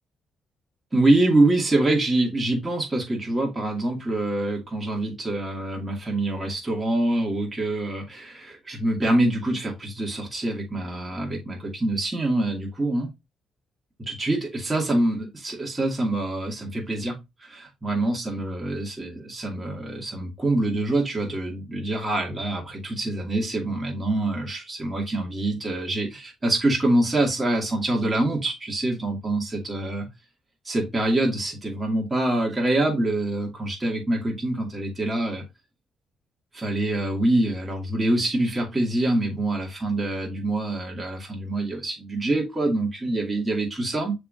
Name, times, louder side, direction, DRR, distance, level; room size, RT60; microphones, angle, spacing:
voice 1, 0.9-13.1 14.0-30.1 30.6-35.4 36.5-44.1, right 2 dB, 20° right, -1 dB, 2.4 m, -25 dB
10.0 x 3.5 x 2.6 m, 0.22 s
cardioid pair, 90°, 0 cm